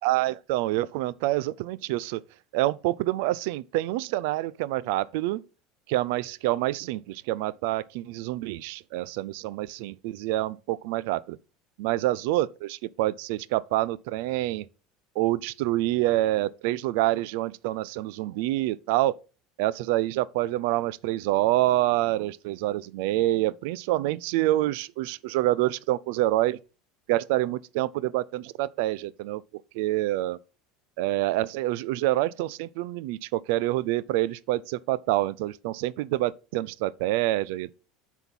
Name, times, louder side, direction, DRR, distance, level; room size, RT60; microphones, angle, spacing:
voice 1, 0.0-2.2 2.5-5.4 5.9-11.4 11.8-14.7 15.2-19.2 19.6-26.6 27.1-30.4 31.0-37.7, right 16 dB, 75° right, 0.4 m, -27 dB
8.1 x 4.5 x 5.3 m
hypercardioid pair, 90°, 0 cm